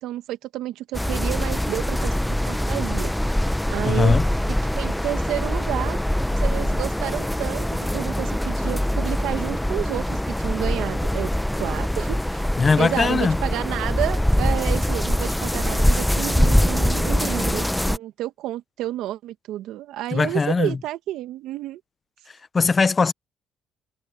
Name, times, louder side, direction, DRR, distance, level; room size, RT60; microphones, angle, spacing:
voice 1, 0.0-3.1 3.7-4.2 4.8-6.0 6.3-7.7 7.9-11.3 11.6-12.4 12.8-21.8, right 14 dB, 75° right, 1.9 m, -30 dB
sound 1, 0.9-18.0, left 1 dB, 5° left, 1.0 m, -23 dB
voice 2, 3.8-4.3 12.6-13.4 20.1-20.8 22.5-23.1, left 4 dB, 35° left, 0.8 m, -20 dB
supercardioid pair, 60°, 0 cm